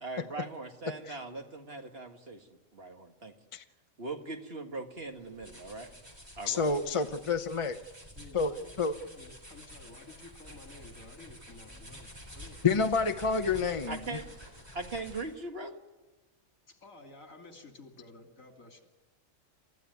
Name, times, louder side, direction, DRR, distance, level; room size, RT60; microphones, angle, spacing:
voice 1, 0.0-2.5 2.7-3.3 4.0-5.9 6.4-6.6 13.9-14.3 14.7-15.8, right 3 dB, 50° right, 4 dB, 2.0 m, -40 dB
sound 1, 5.0-15.4, equal, 20° right, 3.8 m, -49 dB
voice 2, 6.5-7.8 8.3-8.9 12.6-14.2, left 4 dB, 30° left, 8 dB, 0.7 m, -29 dB
voice 3, 8.1-12.8 16.7-18.9, left 3 dB, 85° left, 3 dB, 3.1 m, -52 dB
28.5 x 14.0 x 9.5 m, 1.2 s
omnidirectional pair, 1.4 m